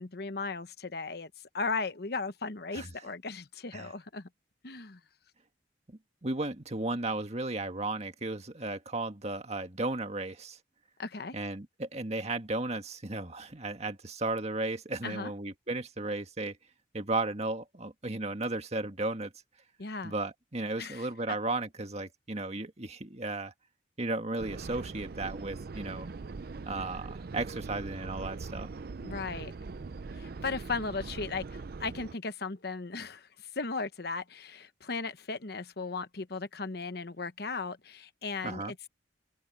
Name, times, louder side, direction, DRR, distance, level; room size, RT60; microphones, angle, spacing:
voice 1, 0.0-4.3 4.6-5.0 11.0-11.3 15.0-15.3 19.8-20.1 20.8-21.1 29.0-29.6 30.1-38.9, left 4 dB, 60° left, 1.0 m, -36 dB
voice 2, 5.9-10.6 11.3-16.6 16.9-19.3 20.0-23.5 24.0-26.1 26.7-28.7 38.4-38.7, right 2 dB, 35° right, 1.8 m, -35 dB
sound 1, 24.4-32.1, right 4 dB, 55° right, 0.5 m, -41 dB
head